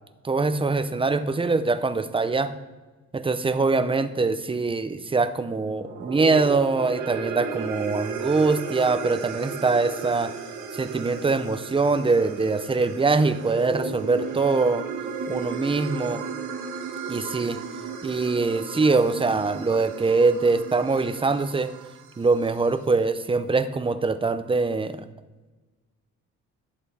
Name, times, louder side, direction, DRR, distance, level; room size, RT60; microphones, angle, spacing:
voice 1, 0.2-2.5 3.1-10.3 10.7-14.8 15.3-16.2 17.1-17.6 18.0-21.7 22.2-25.0, right 3 dB, 15° right, 10 dB, 0.6 m, -23 dB
sound 1, 5.8-22.2, right 5 dB, 80° right, 1.4 m, -35 dB
11.5 x 7.3 x 4.2 m, 1.3 s
cardioid pair, 90°, 30 cm